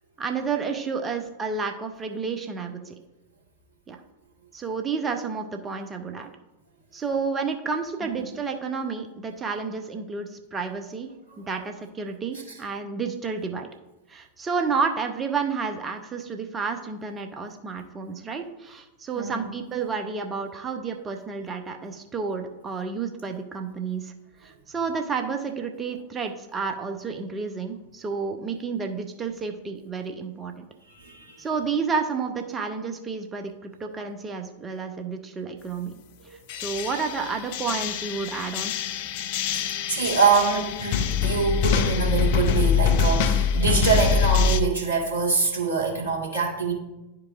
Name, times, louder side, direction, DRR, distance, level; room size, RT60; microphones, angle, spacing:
voice 1, 0.2-2.9 3.9-4.0 4.5-6.3 6.9-11.1 11.4-13.7 14.1-24.1 24.4-30.6 31.4-35.9 36.6-38.7, right 5 dB, 20° right, 4 dB, 0.7 m, -30 dB
voice 2, 19.2-19.5 30.9-31.4 39.5-46.7, right 5 dB, 90° left, -2 dB, 2.1 m, -25 dB
sound 1, 36.5-44.6, left 6 dB, 50° left, 0.5 m, -24 dB
11.5 x 4.7 x 2.5 m, 1.0 s
figure-of-eight pair, 90°, 0 cm